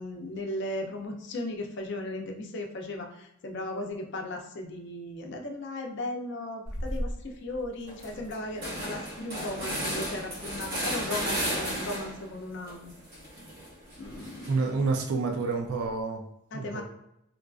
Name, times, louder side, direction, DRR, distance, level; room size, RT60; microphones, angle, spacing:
voice 1, 0.0-12.9 14.0-14.4 16.5-16.8, left 1 dB, 50° left, 2 dB, 0.5 m, -36 dB
sound 1, 6.7-7.1 7.5-7.6 7.9-12.3 12.7-14.8, equal, 45° right, 0.9 m, -34 dB
voice 2, 14.5-16.2 16.5-16.8, right 4 dB, 70° right, 2 dB, 0.4 m, -28 dB
3.7 x 2.4 x 2.3 m, 0.81 s
head